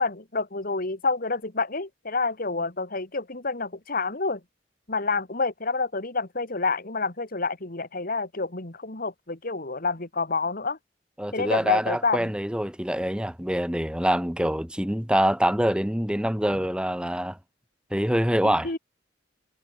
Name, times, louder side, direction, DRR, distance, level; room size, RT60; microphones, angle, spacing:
voice 1, 0.0-4.4 4.9-10.8 11.3-12.3 18.4-18.8, left 3 dB, 50° left, 2.3 m, -28 dB
voice 2, 11.2-17.4 17.9-18.7, equal, 5° right, 2.3 m, -25 dB
head